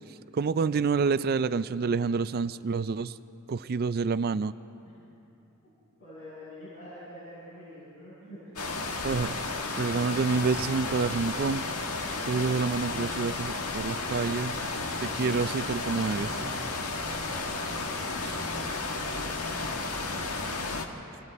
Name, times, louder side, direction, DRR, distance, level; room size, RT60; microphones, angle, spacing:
voice 1, 0.3-3.1 3.5-4.5 9.0-9.3 9.8-11.7 12.2-14.5 15.0-16.3 18.2-18.3, right 5 dB, 45° right, 14 dB, 0.4 m, -28 dB
voice 2, 6.0-8.5 9.7-10.1 16.2-17.5 20.3-20.7, equal, 60° left, -10 dB, 7.0 m, -47 dB
sound 1, 8.6-20.9, left 3 dB, 90° left, 1.7 m, -33 dB
29.0 x 26.0 x 4.1 m, 3.0 s
head